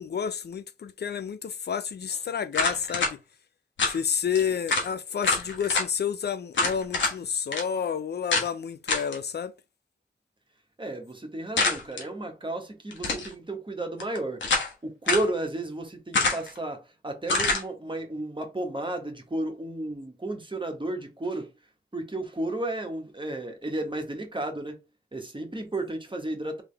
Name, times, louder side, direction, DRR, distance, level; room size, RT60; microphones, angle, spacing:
voice 1, 0.0-3.2 3.9-9.5, left 7 dB, 65° left, 0.5 m, -30 dB
sound 1, 2.5-3.1 3.8-4.0 4.4-4.5 4.7-4.9 5.2-5.9 6.5-7.2 7.5-7.6 8.3-8.5 8.9-9.2 11.6-12.0 12.9-13.3 14.0-14.7 15.1-15.3 16.1-16.6 17.3-17.6, left 3 dB, 90° left, 1.2 m, -26 dB
voice 2, 10.8-16.8 17.0-21.5 21.9-24.7 25.1-26.6, right 2 dB, 25° right, 1.5 m, -33 dB
3.5 x 3.5 x 3.4 m
cardioid pair, 45°, 19 cm